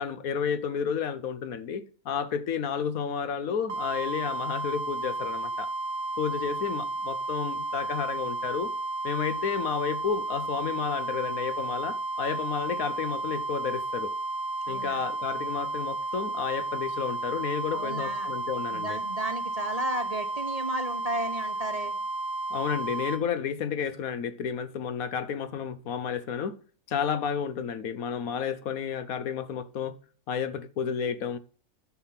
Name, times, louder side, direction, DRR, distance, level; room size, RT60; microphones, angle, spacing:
voice 1, 0.0-5.7 6.2-8.7 9.0-14.1 14.7-19.0 22.5-26.6 26.9-29.9 30.3-31.4, left 7 dB, 70° left, 1.2 m, -31 dB
sound 1, 3.7-23.2, right 2 dB, 65° right, 1.9 m, -32 dB
voice 2, 14.7-15.1 17.7-18.3 18.7-21.9, right 1 dB, 30° right, 1.0 m, -34 dB
9.9 x 7.4 x 5.8 m
omnidirectional pair, 1.6 m